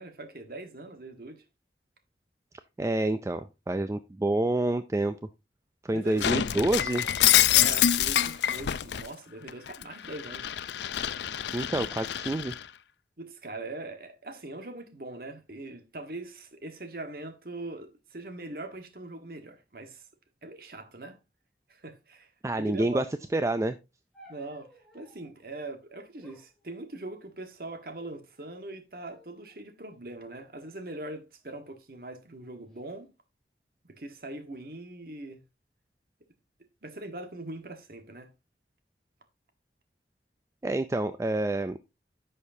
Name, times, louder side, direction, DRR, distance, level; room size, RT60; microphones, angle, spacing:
voice 1, 0.0-1.4 5.9-6.4 7.5-10.7 13.2-20.0 20.4-21.2 21.7-22.3 22.6-23.1 24.3-24.7 24.9-33.1 33.9-35.4 36.8-38.3, right 2 dB, 55° right, 1.4 m, -41 dB
voice 2, 2.8-5.2 5.8-7.1 11.5-12.5 22.4-23.0 23.3-23.8 40.6-41.8, right 2 dB, 15° right, 0.3 m, -28 dB
Shatter, 6.2-9.1 9.5-12.6, left 11 dB, 80° left, 0.5 m, -26 dB
sound 1, 24.1-25.4 26.2-27.4 28.2-28.7 29.0-29.6 30.3-31.6 32.4-32.8, equal, ahead, 2.3 m, -60 dB
10.5 x 6.5 x 2.7 m
head